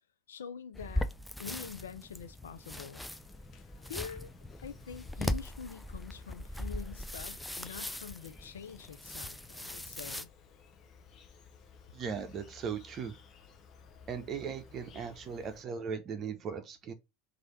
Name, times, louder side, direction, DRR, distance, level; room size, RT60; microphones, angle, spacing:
voice 1, 0.3-1.1 1.4-3.1 3.9-4.3 4.6-10.3, left 7 dB, 90° left, 0.4 m, -45 dB
sound 1, 0.7-10.2, left 1 dB, 5° left, 0.4 m, -39 dB
Insect, 2.4-15.6, left 5 dB, 45° left, 0.7 m, -57 dB
voice 2, 11.9-13.1 14.1-16.9, right 6 dB, 40° right, 0.8 m, -38 dB
3.3 x 2.7 x 4.0 m
hypercardioid pair, 95°, 0 cm